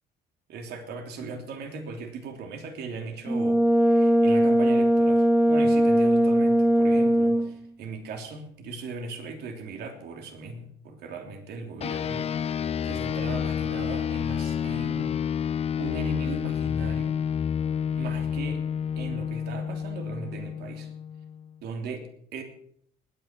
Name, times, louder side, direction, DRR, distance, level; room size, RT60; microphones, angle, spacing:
voice 1, 0.5-12.3 12.6-15.1 15.8-17.2 17.9-18.6 19.0-20.9 21.6-22.4, right 3 dB, 75° right, 4 dB, 3.1 m, -38 dB
Brass instrument, 3.3-7.6, right 1 dB, 5° right, 0.6 m, -20 dB
sound 1, 11.8-21.5, left 8 dB, 35° left, 0.6 m, -29 dB
20.0 x 9.3 x 5.9 m, 0.66 s
cardioid pair, 110°, 17 cm